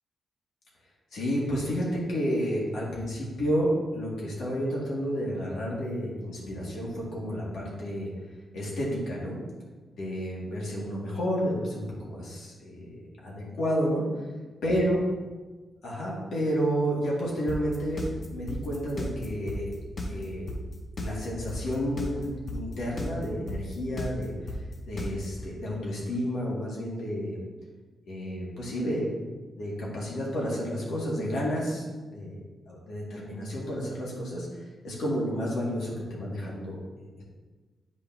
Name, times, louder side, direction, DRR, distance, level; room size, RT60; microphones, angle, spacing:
voice 1, 1.1-8.1 8.5-9.4 10.0-14.0 14.6-15.0 15.8-18.0 18.3-19.7 20.0-20.5 21.0-24.3 24.8-27.4 28.1-29.1 29.6-32.4 32.7-34.5 34.8-37.2, equal, 80° left, -5 dB, 2.1 m, -31 dB
sound 1, 17.5-25.4, left 2 dB, 45° left, 1.1 m, -34 dB
8.3 x 5.1 x 2.8 m, 1.3 s
cardioid pair, 80°, 0 cm